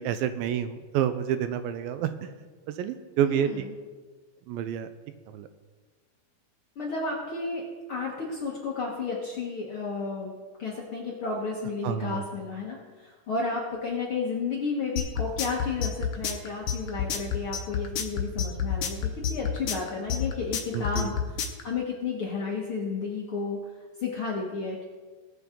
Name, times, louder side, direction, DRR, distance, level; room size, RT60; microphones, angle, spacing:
voice 1, 0.0-2.3 2.8-3.5 4.5-4.9 5.3-5.5 11.8-12.2 20.7-21.1, right 10 dB, 80° right, 10 dB, 2.3 m, -28 dB
voice 2, 3.2-3.7 6.7-7.6 7.9-23.6 24.0-24.8, left 4 dB, 55° left, -3 dB, 1.5 m, -32 dB
sound 1, 15.0-21.6, left 7 dB, 90° left, 1.3 m, -28 dB
19.5 x 7.2 x 3.8 m, 1.4 s
omnidirectional pair, 4.2 m